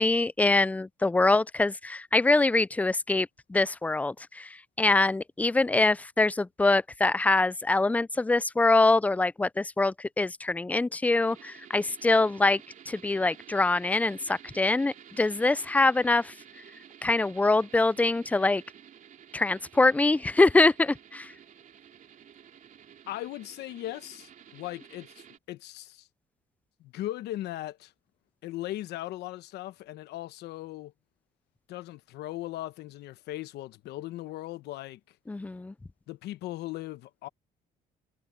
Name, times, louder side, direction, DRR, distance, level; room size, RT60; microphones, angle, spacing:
voice 1, 0.0-12.6 12.9-16.3 17.0-18.6 19.3-21.3 35.3-35.7, left 2 dB, 10° left, 0.4 m, -24 dB
sound 1, 11.2-25.4, right 9 dB, 50° right, 3.3 m, -52 dB
voice 2, 23.1-26.1 26.8-27.9 28.4-30.9 31.7-35.2 36.1-37.3, left 15 dB, 80° left, 1.1 m, -38 dB
cardioid pair, 110°, 17 cm